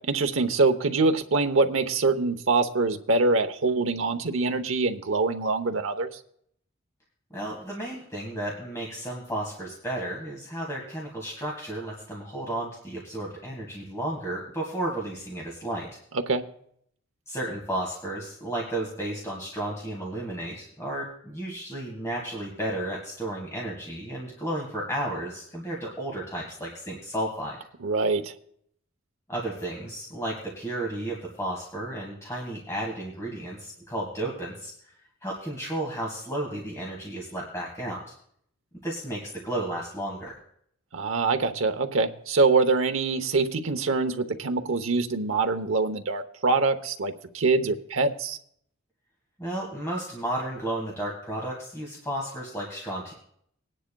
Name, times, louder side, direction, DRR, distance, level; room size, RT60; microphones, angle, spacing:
voice 1, 0.1-6.1 16.3-16.4 27.8-28.3 40.9-48.4, right 3 dB, 70° right, 7 dB, 0.9 m, -24 dB
voice 2, 7.3-16.0 17.3-27.6 29.3-34.7 35.2-38.0 38.8-40.4 49.4-53.1, right 1 dB, 15° left, -2 dB, 1.7 m, -33 dB
20.0 x 10.0 x 2.3 m, 0.67 s
head